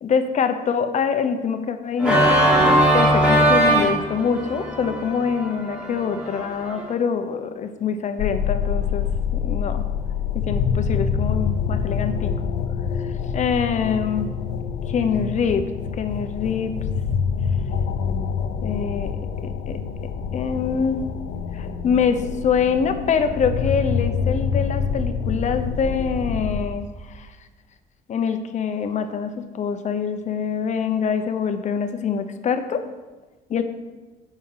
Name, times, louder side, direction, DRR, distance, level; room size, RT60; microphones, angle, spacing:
voice 1, 0.0-2.5 2.9-9.1 9.3-9.8 10.3-12.3 13.3-14.3 14.9-15.6 16.0-16.7 18.6-19.7 20.3-21.0 21.5-27.3 28.1-32.8 33.5-33.6, left 6 dB, 45° left, 8 dB, 0.9 m, -24 dB
Organ, 2.0-6.8, right 1 dB, 5° right, 3.4 m, -20 dB
sound 1, 8.2-26.7, left 6 dB, 90° left, 0.8 m, -26 dB
8.5 x 6.1 x 5.6 m, 1.2 s
cardioid pair, 110°, 17 cm